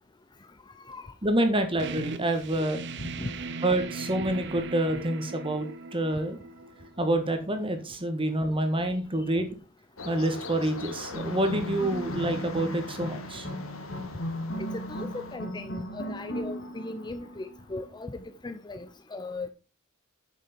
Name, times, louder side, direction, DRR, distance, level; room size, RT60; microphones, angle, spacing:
voice 1, 1.2-2.8 3.6-6.4 7.0-9.5 10.0-13.5, right 1 dB, 25° right, 1.6 m, -27 dB
sound 1, 1.8-7.2, right 3 dB, 60° right, 0.9 m, -39 dB
sound 2, 10.0-15.4, left 3 dB, 80° left, 1.6 m, -42 dB
sound 3, 11.1-17.7, equal, 60° left, 2.5 m, -36 dB
voice 2, 14.7-19.5, left 2 dB, 20° left, 0.5 m, -38 dB
9.0 x 6.6 x 4.4 m
head